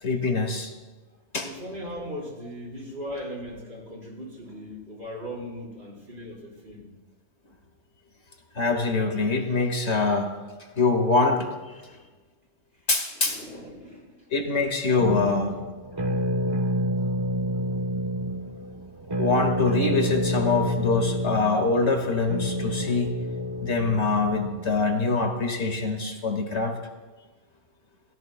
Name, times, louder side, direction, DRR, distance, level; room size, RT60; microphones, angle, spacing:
voice 1, 0.0-0.7 1.3-1.5 8.6-10.3 10.8-11.5 12.9-13.4 14.3-15.6 19.2-23.2 23.6-26.8, left 3 dB, 70° left, 4 dB, 2.1 m, -24 dB
voice 2, 1.4-6.9 11.7-12.1 13.1-14.3 15.1-15.4, equal, 45° right, -4 dB, 4.9 m, -39 dB
sound 1, 15.0-24.9, equal, 20° right, 1.0 m, -28 dB
30.0 x 16.5 x 2.2 m, 1.2 s
omnidirectional pair, 1.2 m